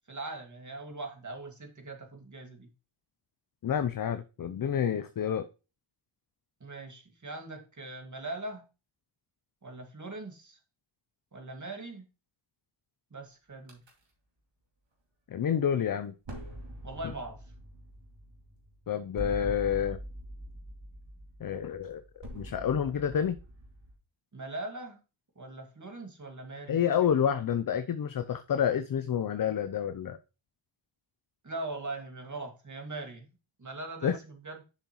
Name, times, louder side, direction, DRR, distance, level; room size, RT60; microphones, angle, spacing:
voice 1, 0.1-2.7 6.6-8.7 9.6-10.6 11.3-12.0 13.1-13.8 16.8-17.5 24.3-25.0 25.4-26.8 31.4-34.6, right 2 dB, 35° right, 4 dB, 2.0 m, -41 dB
voice 2, 3.6-5.5 15.3-16.1 18.9-20.0 21.4-23.4 26.7-30.2 34.0-34.2, left 8 dB, 45° left, 10 dB, 0.6 m, -29 dB
sound 1, 13.7-13.9 16.2-23.9, equal, 60° right, 2.5 m, -44 dB
6.8 x 5.7 x 3.0 m, 0.31 s
cardioid pair, 50°, 48 cm